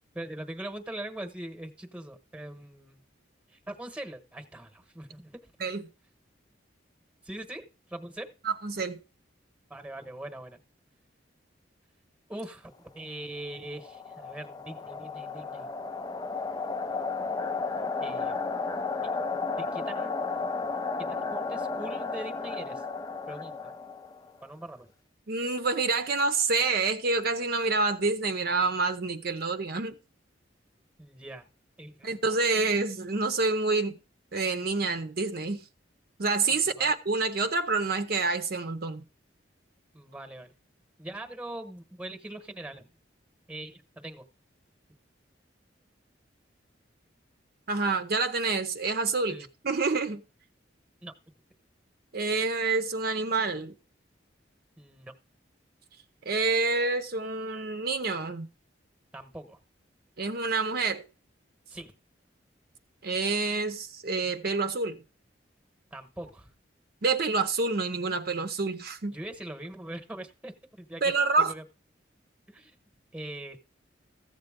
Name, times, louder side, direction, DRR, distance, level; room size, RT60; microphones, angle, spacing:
voice 1, 0.1-3.0 3.5-5.4 7.2-8.3 9.7-10.6 12.3-15.7 18.0-18.5 19.0-19.1 19.6-20.2 21.0-22.8 23.3-23.7 24.4-24.9 31.0-31.5 31.8-32.1 36.5-36.9 39.9-40.5 41.0-42.9 43.5-44.2 49.3-49.5 51.0-51.1 54.8-55.1 59.1-59.6 61.7-61.9 65.9-66.5 69.1-71.0 71.4-71.6 72.5-72.7 73.1-73.6, right 1 dB, 5° right, 1.1 m, -42 dB
voice 2, 8.4-9.0 25.3-30.0 32.0-34.0 34.3-35.6 36.2-39.0 47.7-49.4 49.6-50.2 52.1-53.7 56.3-58.5 60.2-61.0 63.0-65.0 67.0-69.2 71.0-71.5, right 3 dB, 55° right, 0.7 m, -27 dB
sound 1, 13.5-24.4, left 4 dB, 20° left, 0.5 m, -33 dB
14.5 x 7.9 x 3.7 m
head